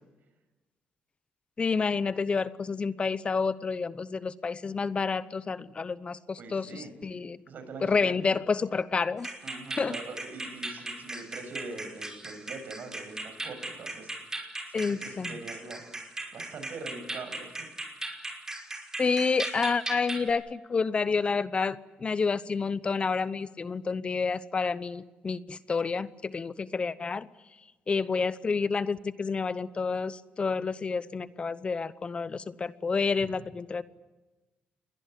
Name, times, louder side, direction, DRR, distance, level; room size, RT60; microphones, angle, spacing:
voice 1, 1.6-7.4 7.8-9.3 9.8-10.0 14.7-15.3 19.0-27.3 27.9-33.8, left 4 dB, 35° left, 15 dB, 0.9 m, -29 dB
voice 2, 6.4-6.9 7.5-8.1 9.4-14.1 14.8-15.8 16.3-17.7 33.2-33.3, right 3 dB, 60° right, 8 dB, 6.9 m, -43 dB
Guitar music from a sad chords, 9.2-20.3, right 2 dB, 15° right, 5.7 m, -39 dB
28.5 x 22.0 x 8.4 m, 1.1 s
cardioid pair, 95°, 3 cm